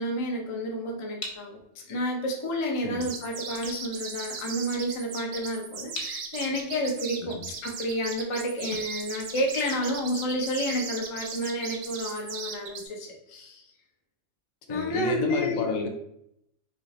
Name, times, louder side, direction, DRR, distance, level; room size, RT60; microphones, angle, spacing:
voice 1, 0.0-13.6 14.7-15.7, equal, 35° left, 1 dB, 0.5 m, -30 dB
sound 1, 1.2-10.0, left 2 dB, 50° left, 1.2 m, -46 dB
sound 2, 3.0-12.9, right 6 dB, 80° right, 1.1 m, -37 dB
voice 2, 7.2-7.5 14.7-15.9, left 3 dB, 75° left, 4 dB, 1.1 m, -31 dB
3.2 x 3.0 x 4.0 m, 0.78 s
omnidirectional pair, 1.5 m